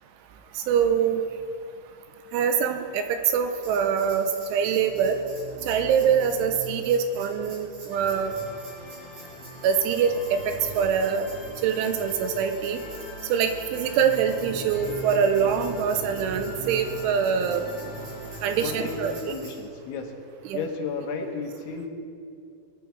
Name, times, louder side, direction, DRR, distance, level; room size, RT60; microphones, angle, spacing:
voice 1, 0.6-1.2 2.3-5.2 5.6-8.3 9.6-11.3 11.6-12.8 13.3-17.6 18.4-19.1 20.5-20.6, right 7 dB, 80° right, 7 dB, 3.0 m, -24 dB
Tambourine, 3.6-19.6, right 2 dB, 45° right, 5.2 m, -47 dB
sound 1, 4.5-13.0 13.6-19.3, right 5 dB, 65° right, 3.2 m, -42 dB
sound 2, 7.9-19.2, left 1 dB, 40° left, 2.5 m, -42 dB
voice 2, 18.6-20.2 20.5-21.9, left 5 dB, 75° left, 2 dB, 3.4 m, -33 dB
22.0 x 10.5 x 4.6 m, 2.5 s
omnidirectional pair, 5.8 m